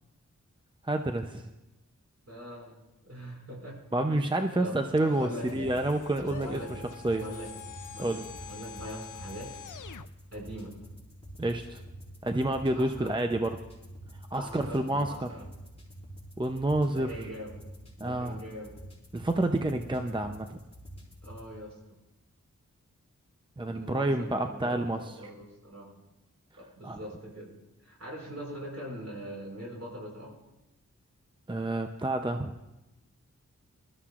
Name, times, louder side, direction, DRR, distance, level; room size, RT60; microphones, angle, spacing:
voice 1, 0.8-1.4 3.9-6.6 7.0-7.2 8.0-8.2 11.4-11.8 12.2-13.6 14.3-15.3 16.4-17.3 18.0-18.4 19.1-20.6 23.6-25.1 26.8-27.0 31.5-32.5, right 1 dB, 15° right, 5 dB, 0.6 m, -29 dB
voice 2, 2.3-3.8 4.1-4.2 4.6-5.7 6.3-6.9 7.1-9.5 10.3-10.7 12.7-13.1 14.4-15.4 16.9-17.5 18.0-18.7 21.2-22.0 23.6-25.9 26.6-27.5 27.8-30.3, equal, 55° right, -2 dB, 5.6 m, -42 dB
sound 1, 5.0-10.1, left 8 dB, 85° left, 0.5 m, -45 dB
sound 2, 5.4-21.5, right 1 dB, 20° left, 5.0 m, -48 dB
23.5 x 13.5 x 2.5 m, 0.96 s
wide cardioid pair, 70°, 30 cm